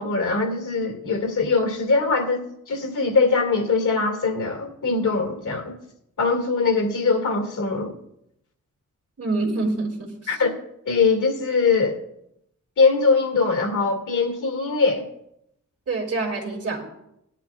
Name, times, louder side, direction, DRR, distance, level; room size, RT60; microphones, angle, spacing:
voice 1, 0.0-5.8 6.2-8.0 10.3-10.6 10.9-12.0 12.8-15.1, left 4 dB, 80° left, 3 dB, 2.3 m, -22 dB
voice 2, 9.2-10.3 15.9-16.8, right 3 dB, 50° right, 1 dB, 2.6 m, -26 dB
18.5 x 10.5 x 2.4 m, 0.78 s
wide cardioid pair, 150°, 30 cm